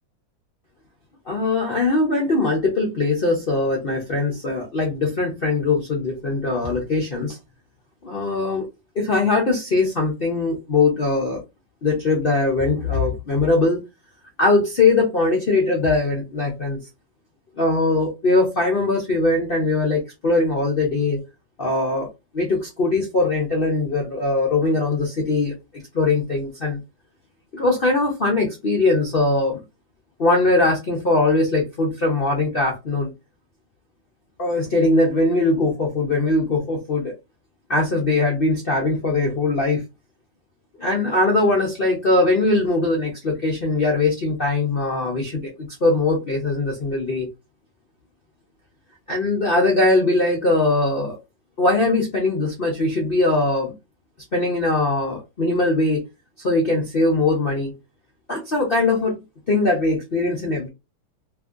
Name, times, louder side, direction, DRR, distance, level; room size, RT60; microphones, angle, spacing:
voice 1, 1.3-7.4 8.0-8.7 9.0-11.4 11.8-13.8 14.4-16.8 17.6-21.2 21.6-22.1 22.3-25.5 25.9-26.8 27.5-29.6 30.2-33.1 34.4-37.1 37.7-39.8 40.8-45.5 45.8-47.3 49.1-51.2 51.6-53.7 54.3-56.0 56.4-57.7 58.3-59.2 59.5-60.7, left 2 dB, 75° left, 0.5 m, -21 dB
3.0 x 2.7 x 2.4 m
omnidirectional pair, 2.1 m